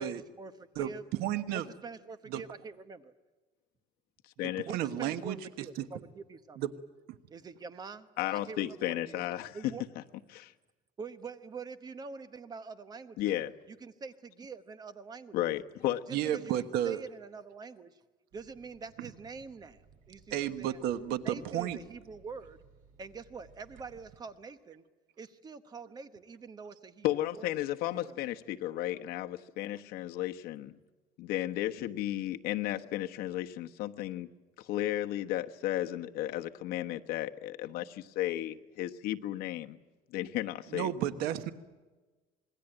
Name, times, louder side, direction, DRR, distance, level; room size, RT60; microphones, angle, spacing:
voice 1, 0.0-1.0 1.5-3.1 4.7-6.6 7.3-9.2 9.5-9.8 11.0-13.3 13.7-15.4 16.1-18.0 18.3-19.8 20.1-20.8 21.2-22.6 23.0-24.8 25.2-27.5 27.9-28.2, right 4 dB, 25° right, 11 dB, 1.0 m, -45 dB
voice 2, 1.2-1.7 2.3-2.4 4.4-5.4 6.6-6.7 16.1-17.0 20.3-21.8 40.7-41.5, right 11 dB, 85° right, 11 dB, 1.3 m, -32 dB
voice 3, 8.2-9.6 10.3-10.5 13.2-13.5 15.3-16.0 27.0-30.7 31.2-34.3 34.6-39.8 40.1-40.9, left 14 dB, 75° left, 5 dB, 1.2 m, -34 dB
sound 1, 18.3-24.2, right 5 dB, 60° right, 5.1 m, -61 dB
26.5 x 21.5 x 9.0 m, 1.2 s
cardioid pair, 165°, 16 cm